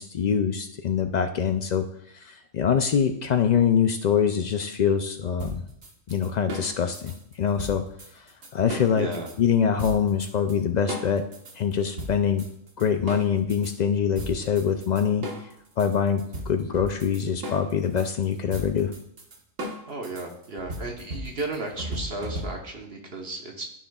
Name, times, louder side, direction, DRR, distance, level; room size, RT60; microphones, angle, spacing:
voice 1, 0.0-1.9 2.1-5.6 6.1-7.8 8.1-8.2 8.5-9.1 9.4-11.3 11.6-12.4 12.8-15.3 15.8-18.9, left 7 dB, 90° left, 7 dB, 0.3 m, -24 dB
sound 1, 5.4-9.4 9.8-10.6 10.9-13.7 14.2-22.8, equal, 85° right, 1.8 m, -36 dB
voice 2, 8.9-9.3 19.9-23.6, right 2 dB, 50° right, 1 dB, 1.3 m, -34 dB
14.0 x 6.2 x 2.3 m, 0.69 s
omnidirectional pair, 1.3 m